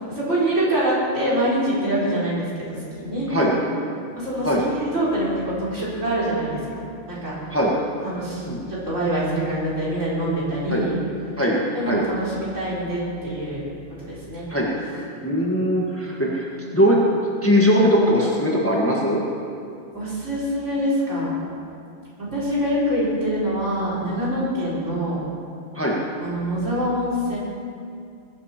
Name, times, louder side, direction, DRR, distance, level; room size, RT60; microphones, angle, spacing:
voice 1, 0.1-3.3 4.2-4.5 4.7-6.6 7.1-7.3 8.0-11.0 11.7-13.6 14.0-14.5 19.9-21.4 22.2-25.2 26.2-27.4, right 1 dB, 85° right, -8 dB, 4.6 m, -25 dB
voice 2, 15.2-16.5 16.7-17.0 17.4-19.2 25.7-26.0, equal, 10° left, -4 dB, 1.7 m, -20 dB
20.0 x 11.0 x 4.4 m, 2.4 s
omnidirectional pair, 1.2 m